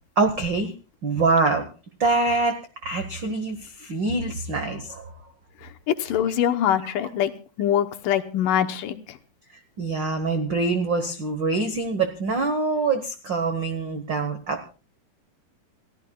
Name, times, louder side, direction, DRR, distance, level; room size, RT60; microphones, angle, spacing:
voice 1, 0.2-0.7 1.0-1.7 2.0-5.1 9.5-14.6, right 3 dB, 80° right, 6 dB, 1.0 m, -25 dB
voice 2, 5.6-7.3 7.6-9.2, left 10 dB, 75° left, 7 dB, 2.4 m, -24 dB
29.0 x 15.0 x 2.3 m, 0.34 s
omnidirectional pair, 4.1 m